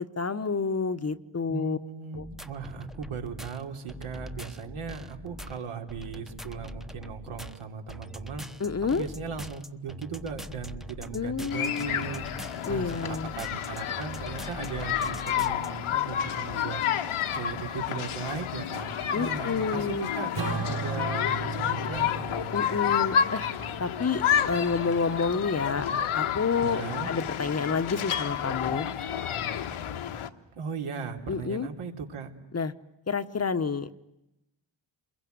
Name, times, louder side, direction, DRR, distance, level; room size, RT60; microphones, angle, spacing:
voice 1, 0.0-1.8 2.2-2.3 8.6-9.0 11.1-11.9 12.6-13.3 19.1-20.1 22.5-23.4 23.8-25.9 26.1-28.9 31.3-31.7 32.5-32.7 33.1-33.9, left 5 dB, 30° left, 11 dB, 1.1 m, -29 dB
voice 2, 1.5-8.5 8.9-12.3 12.7-16.8 17.3-22.2 26.6-27.1 30.5-32.3, right 6 dB, 75° right, 3 dB, 3.4 m, -37 dB
sound 1, 2.1-15.7, equal, ahead, 1.0 m, -43 dB
sound 2, 11.5-30.3, left 9 dB, 75° left, 1.5 m, -30 dB
Acoustic guitar / Strum, 20.4-25.1, right 5 dB, 55° right, 4.8 m, -37 dB
28.5 x 22.0 x 9.5 m, 0.90 s
cardioid pair, 95°, 50 cm